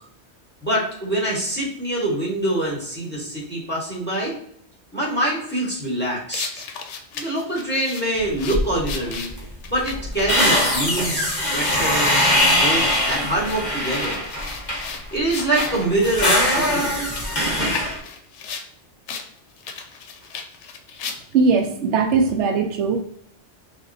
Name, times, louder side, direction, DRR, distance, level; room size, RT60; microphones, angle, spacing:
voice 1, 0.6-4.3 4.9-6.7 7.1-9.3 9.7-12.2 12.5-14.2 15.1-17.3, right 1 dB, 10° left, -5 dB, 1.4 m, -25 dB
sound 1, 6.3-15.9 16.4-18.7 19.1-19.3 19.6-21.5, left 6 dB, 80° left, 0.9 m, -36 dB
sound 2, 8.5-8.9 9.3-9.4 9.7-15.0 15.4-18.0, left 1 dB, 40° left, 1.2 m, -22 dB
voice 2, 21.3-23.0, right 5 dB, 80° right, 4 dB, 0.9 m, -19 dB
5.7 x 2.4 x 2.6 m, 0.66 s
omnidirectional pair, 1.2 m